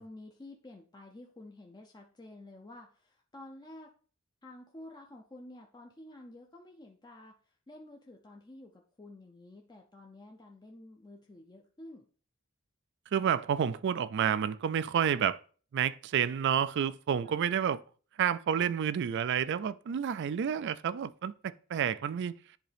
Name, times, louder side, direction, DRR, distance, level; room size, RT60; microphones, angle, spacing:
voice 1, 0.0-3.9 4.4-12.1 17.2-17.4, left 1 dB, 20° left, 0.5 m, -51 dB
voice 2, 13.1-15.4 15.7-17.8 18.2-22.3, right 8 dB, 55° right, 0.3 m, -29 dB
10.0 x 3.7 x 3.4 m
head